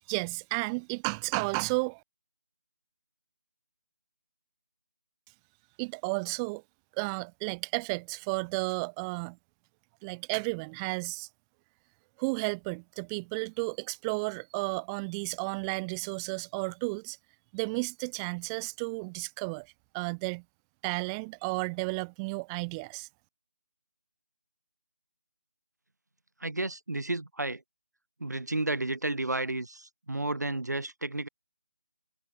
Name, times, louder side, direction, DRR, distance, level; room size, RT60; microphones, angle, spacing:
voice 1, 0.1-2.0 5.8-6.6 7.0-9.4 10.0-11.3 12.2-17.2 17.5-20.4 20.8-23.1, right 32 dB, 15° right, 7.6 m, -33 dB
voice 2, 26.4-27.6 28.2-31.3, right 2 dB, 85° right, 7.9 m, -32 dB
figure-of-eight pair, 160°, 9 cm